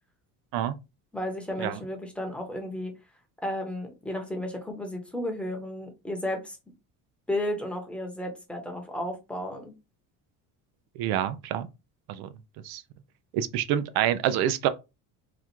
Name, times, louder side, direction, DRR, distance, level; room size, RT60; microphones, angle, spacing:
voice 1, 1.1-2.9 3.4-6.6 7.3-9.7, left 1 dB, 5° left, 0.9 m, -33 dB
voice 2, 11.0-11.7 12.1-12.3 12.6-12.8 13.3-14.7, right 11 dB, 90° right, 0.6 m, -27 dB
4.0 x 2.4 x 4.4 m
cardioid pair, 160°, 36 cm